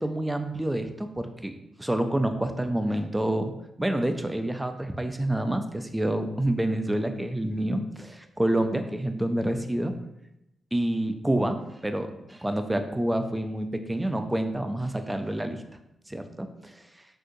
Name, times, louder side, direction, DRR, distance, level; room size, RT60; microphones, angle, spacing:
voice 1, 0.0-3.5 3.8-9.9 10.7-15.6 16.1-16.8, right 1 dB, 10° right, 7 dB, 0.3 m, -28 dB
3.7 x 2.7 x 2.5 m, 0.88 s
cardioid pair, 60°, 0 cm